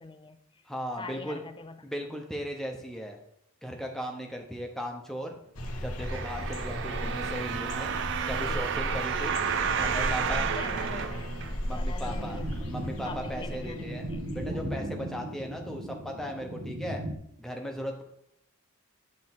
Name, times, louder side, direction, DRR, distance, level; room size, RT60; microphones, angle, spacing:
voice 1, 0.0-0.6 1.0-1.8 2.1-2.2 9.1-12.7 13.0-14.2, left 3 dB, 20° left, 0.5 m, -43 dB
voice 2, 0.7-1.4 1.8-3.2 3.6-5.4 5.8-7.9 8.3-9.3 9.8-10.4 11.7-12.4 12.7-17.0 17.4-18.0, equal, ahead, 0.8 m, -37 dB
sound 1, 5.5-14.7, equal, 80° left, 1.4 m, -36 dB
sound 2, 6.0-11.9 12.5-12.6, right 7 dB, 55° right, 0.4 m, -31 dB
sound 3, 12.0-17.2, right 1 dB, 90° right, 1.3 m, -37 dB
9.4 x 3.2 x 6.0 m
head